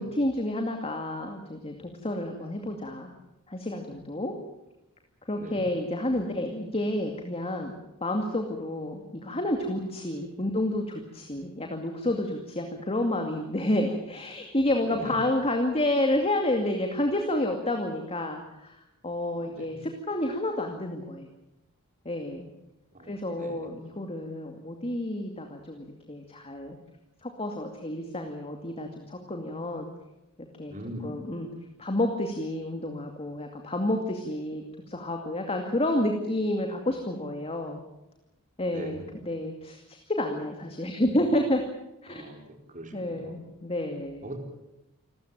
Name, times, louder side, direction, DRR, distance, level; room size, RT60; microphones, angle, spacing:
voice 1, 0.0-3.1 3.5-4.3 5.3-7.7 8.0-21.3 22.0-22.5 23.0-26.8 27.2-29.9 30.6-31.5 31.8-37.8 38.6-41.6 42.0-42.2 42.9-44.3, left 1 dB, 25° left, 3 dB, 2.4 m, -30 dB
voice 2, 14.8-15.2 19.4-19.7 23.0-23.6 30.7-31.1 38.7-38.9 42.1-43.3 44.2-44.4, right 1 dB, 35° right, 3 dB, 4.4 m, -41 dB
28.0 x 14.5 x 9.1 m, 0.92 s
head